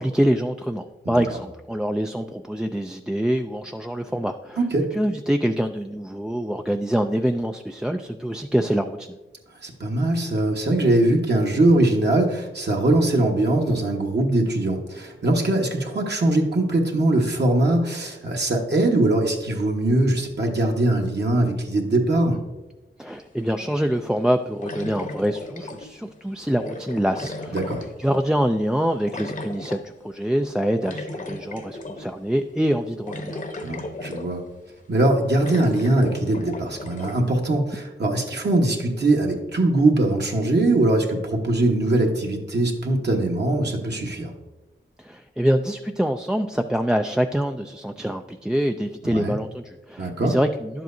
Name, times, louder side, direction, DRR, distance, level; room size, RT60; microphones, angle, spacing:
voice 1, 0.0-4.6 4.9-9.2 23.0-27.6 28.0-33.4 45.0-50.8, equal, 5° right, 5 dB, 0.3 m, -25 dB
voice 2, 4.6-4.9 9.6-22.4 27.5-27.9 33.6-34.4 34.9-44.3 49.1-49.4 50.0-50.3, right 2 dB, 55° right, 0 dB, 1.3 m, -21 dB
sound 1, 23.2-23.3 24.6-26.1 26.6-28.4 29.1-29.8 30.8-32.1 32.5-32.6 33.1-34.5 34.9-35.0 35.4-37.2, left 2 dB, 40° left, 0.9 m, -35 dB
10.5 x 7.6 x 2.7 m, 1.1 s
wide cardioid pair, 75°, 21 cm